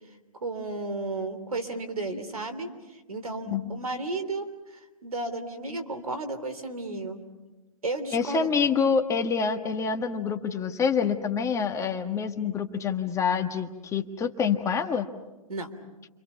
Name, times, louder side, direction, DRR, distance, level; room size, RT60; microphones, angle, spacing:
voice 1, 0.4-7.2 7.8-8.5 15.5-15.7, right 2 dB, 85° right, 9 dB, 3.2 m, -33 dB
voice 2, 3.5-3.8 8.1-15.1, left 6 dB, 15° left, 6 dB, 1.4 m, -27 dB
30.0 x 25.5 x 5.9 m, 1.1 s
hypercardioid pair, 125°, 18 cm